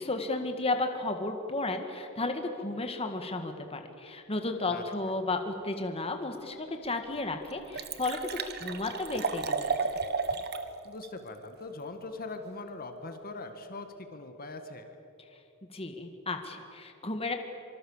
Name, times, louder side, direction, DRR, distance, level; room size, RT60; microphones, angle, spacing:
voice 1, 0.0-9.8 15.7-17.3, left 2 dB, 30° left, 5 dB, 1.8 m, -33 dB
Liquid, 6.6-6.7 7.1-7.2 7.4-10.7 11.0-11.1, right 4 dB, 50° right, 1.5 m, -33 dB
voice 2, 10.8-15.0, left 3 dB, 45° left, 7 dB, 1.8 m, -41 dB
25.5 x 25.0 x 7.3 m, 2.8 s
head